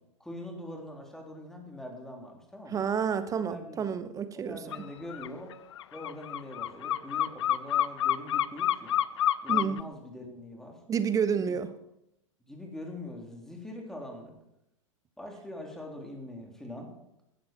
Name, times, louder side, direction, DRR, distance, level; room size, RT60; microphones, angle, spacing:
voice 1, 0.2-2.9 3.4-3.9 4.3-5.5 5.9-9.0 9.4-10.8 11.3-11.6 12.4-14.4 15.2-16.9, left 1 dB, 5° left, 1 dB, 3.6 m, -43 dB
voice 2, 2.7-4.6 9.5-9.8 10.9-11.7, right 7 dB, 20° right, 12 dB, 1.1 m, -29 dB
sound 1, 4.7-4.8 5.1-9.8, left 11 dB, 60° left, 0.6 m, -28 dB
15.5 x 13.5 x 4.6 m, 0.83 s
figure-of-eight pair, 95°, 17 cm